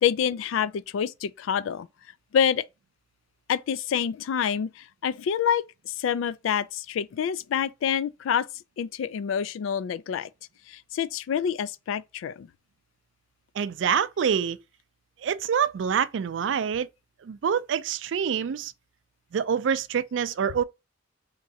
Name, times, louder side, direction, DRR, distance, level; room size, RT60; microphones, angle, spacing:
voice 1, 0.0-1.9 2.3-2.7 3.5-8.5 8.8-10.3 10.7-12.5, left 8 dB, 85° left, 0.3 m, -27 dB
voice 2, 13.6-14.6 15.2-16.9 17.2-18.7 19.3-20.6, right 7 dB, 70° right, 0.3 m, -26 dB
3.5 x 3.0 x 2.7 m
head